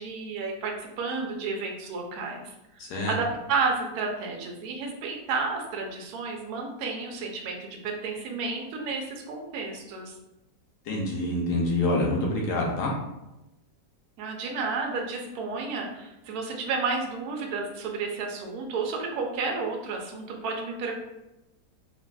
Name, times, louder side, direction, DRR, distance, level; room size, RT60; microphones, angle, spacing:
voice 1, 0.0-2.4 3.1-10.1 14.2-21.0, right 4 dB, 70° right, 1 dB, 0.9 m, -31 dB
voice 2, 2.8-3.2 10.8-12.9, left 2 dB, 70° left, -2 dB, 1.1 m, -26 dB
3.3 x 2.4 x 2.2 m, 0.95 s
omnidirectional pair, 2.0 m